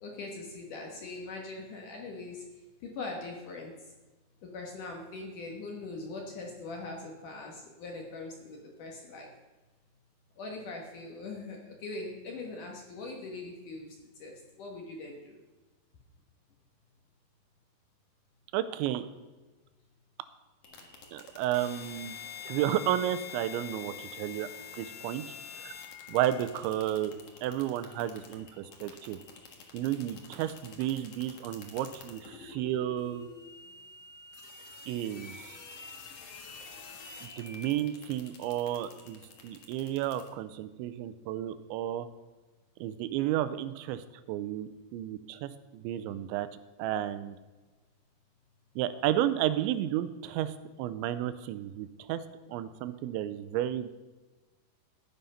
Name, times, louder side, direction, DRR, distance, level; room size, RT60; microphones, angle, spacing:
voice 1, 0.0-2.5 2.8-3.7 4.4-9.3 10.4-13.9 14.2-15.4, left 3 dB, 60° left, 0 dB, 2.3 m, -41 dB
voice 2, 18.5-19.1 21.1-22.2 22.4-25.2 25.5-25.8 26.1-27.1 27.4-29.2 29.7-33.3 34.9-35.6 37.2-42.1 42.8-46.5 46.8-47.4 48.8-52.2 52.5-53.9, right 12 dB, 90° right, 12 dB, 2.9 m, -32 dB
sound 1, 20.6-40.3, left 6 dB, 75° left, 1.3 m, -47 dB
13.0 x 9.2 x 5.6 m, 1.2 s
omnidirectional pair, 5.3 m